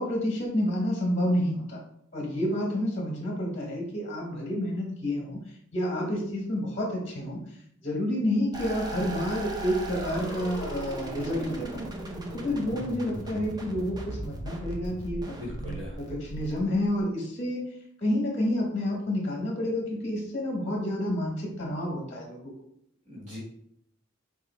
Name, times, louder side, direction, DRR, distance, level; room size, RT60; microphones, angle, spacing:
voice 1, 0.0-1.8 2.1-5.4 5.7-7.4 7.8-11.9 12.3-15.4 15.6-22.5, left 1 dB, 35° left, -1 dB, 0.9 m, -29 dB
sound 1, 8.5-17.0, right 1 dB, 20° right, 0.6 m, -37 dB
voice 2, 15.4-16.0 23.1-23.4, left 1 dB, 40° right, -6 dB, 1.5 m, -39 dB
4.9 x 2.3 x 4.1 m, 0.70 s
head